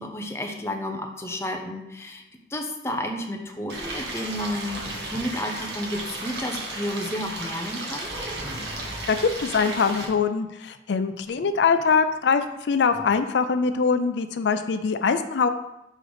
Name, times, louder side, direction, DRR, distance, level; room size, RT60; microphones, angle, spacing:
voice 1, 0.0-2.2 2.5-8.1, left 1 dB, 15° left, 3 dB, 0.7 m, -31 dB
Stream, 3.7-10.1, right 2 dB, 75° right, 1.4 m, -34 dB
sound 1, 8.0-9.4 11.2-12.1 12.4-12.5 12.9-13.1, equal, 35° right, 1.8 m, -40 dB
voice 2, 9.1-15.5, left 5 dB, 85° left, 9 dB, 0.4 m, -23 dB
6.4 x 3.8 x 5.0 m, 0.90 s
head